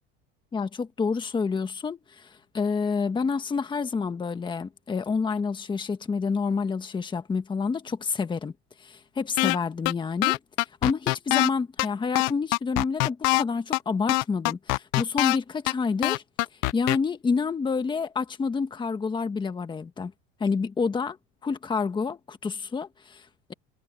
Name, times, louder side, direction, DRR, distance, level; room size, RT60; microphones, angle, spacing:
voice 1, 0.5-8.5 8.8-16.2 16.7-20.1 20.4-21.2 21.4-23.5, left 5 dB, 15° left, 1.5 m, -28 dB
sound 1, 9.4-9.6 9.8-9.9 10.2-11.5 11.8-11.9 12.1-13.4 13.7-13.8 14.1-15.4 15.7-15.8 16.0-17.0, left 25 dB, 60° left, 0.7 m, -23 dB
supercardioid pair, 145°, 31 cm